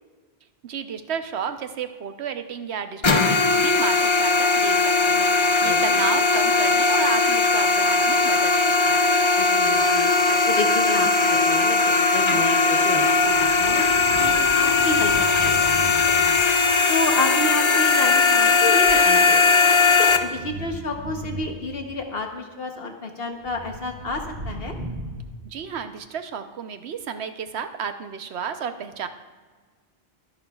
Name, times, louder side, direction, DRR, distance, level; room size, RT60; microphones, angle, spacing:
voice 1, 0.6-9.1 25.4-29.1, right 7 dB, 80° right, 9 dB, 1.1 m, -32 dB
sound 1, 3.0-20.2, left 3 dB, 30° left, 0.6 m, -19 dB
voice 2, 5.6-6.1 9.4-10.1 10.5-13.8 14.2-16.4 16.9-19.4 20.0-24.7, left 3 dB, 65° left, 4 dB, 1.2 m, -30 dB
sound 2, 13.2-16.9 17.9-18.1 19.4-22.0 23.4-25.2, right 1 dB, 55° right, 1.6 m, -37 dB
23.0 x 11.0 x 2.3 m, 1.4 s
omnidirectional pair, 1.1 m